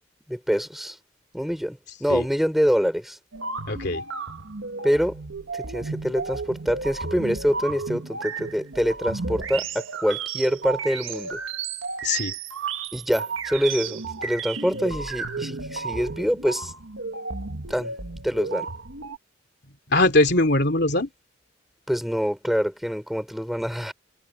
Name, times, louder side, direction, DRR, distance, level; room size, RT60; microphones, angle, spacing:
voice 1, 0.3-1.0 1.3-3.2 4.8-5.2 5.5-11.4 12.9-16.7 17.7-17.9 18.2-18.7 21.9-23.9, equal, ahead, 6.0 m, -25 dB
sound 1, 3.3-19.2, right 4 dB, 80° right, 1.6 m, -33 dB
voice 2, 3.7-4.0 12.0-12.3 19.9-21.1, left 2 dB, 55° left, 3.2 m, -21 dB
head